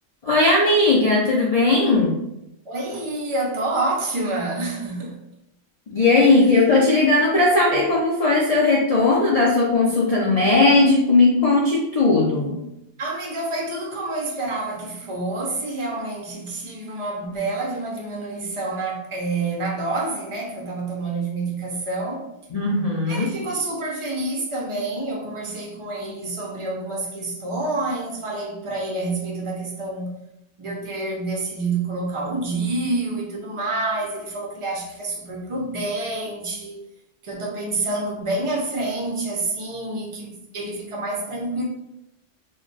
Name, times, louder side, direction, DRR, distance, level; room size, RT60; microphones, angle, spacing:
voice 1, 0.2-2.1 5.9-12.5 22.5-23.3, left 2 dB, 55° left, 0.4 m, -18 dB
voice 2, 2.7-5.2 13.0-22.3 23.1-30.1 30.6-36.8 37.2-41.6, right 2 dB, 45° right, 0.4 m, -28 dB
2.2 x 2.1 x 3.8 m
omnidirectional pair, 1.3 m